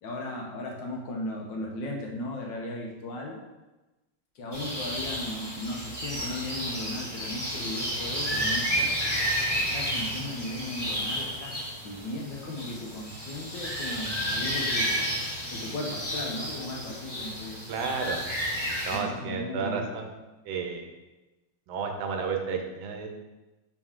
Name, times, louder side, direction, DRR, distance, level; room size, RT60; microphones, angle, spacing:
voice 1, 0.0-3.4 4.3-9.0 9.6-15.0 15.5-17.6 18.9-20.0, left 1 dB, 70° left, 0 dB, 1.6 m, -36 dB
sound 1, 4.5-19.0, equal, 10° left, 2.0 m, -31 dB
voice 2, 17.7-18.2 18.8-20.2 20.4-20.9 21.7-23.1, right 5 dB, 80° right, 4 dB, 1.5 m, -32 dB
5.4 x 4.8 x 3.7 m, 1.1 s
omnidirectional pair, 2.2 m